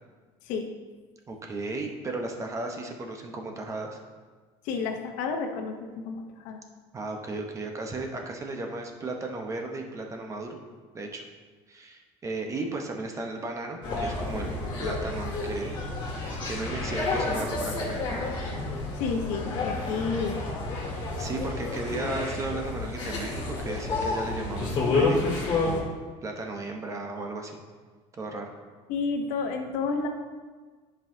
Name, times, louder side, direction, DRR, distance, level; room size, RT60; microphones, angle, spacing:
voice 1, 1.3-4.0 6.9-10.6 10.9-11.2 11.7-14.5 14.8-15.8 16.5-18.2 21.2-25.9 26.2-27.6 28.1-28.5, right 2 dB, 25° right, 3 dB, 0.9 m, -35 dB
voice 2, 4.6-6.6 18.9-20.4 28.9-30.1, left 4 dB, 75° left, 4 dB, 0.9 m, -31 dB
sound 1, 13.8-25.8, left 3 dB, 35° left, 2.1 m, -30 dB
10.5 x 5.5 x 2.8 m, 1.4 s
cardioid pair, 135°, 13 cm